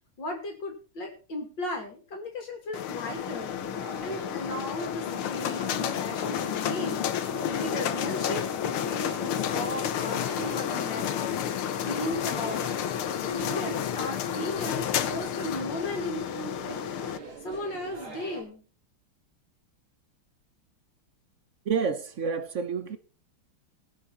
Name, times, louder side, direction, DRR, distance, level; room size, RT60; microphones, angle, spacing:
voice 1, 0.2-3.6 4.0-11.4 11.8-12.8 13.2-16.2 16.6-16.8 17.4-18.6, left 1 dB, 60° left, 3.0 m, -36 dB
sound 1, 2.7-17.2, left 10 dB, 80° left, 1.8 m, -31 dB
sound 2, 3.1-18.4, right 4 dB, 85° right, 3.8 m, -43 dB
sound 3, 10.2-13.7, right 1 dB, 15° right, 2.0 m, -52 dB
voice 2, 21.6-23.0, right 6 dB, 50° right, 1.0 m, -29 dB
21.0 x 7.3 x 4.1 m
omnidirectional pair, 2.3 m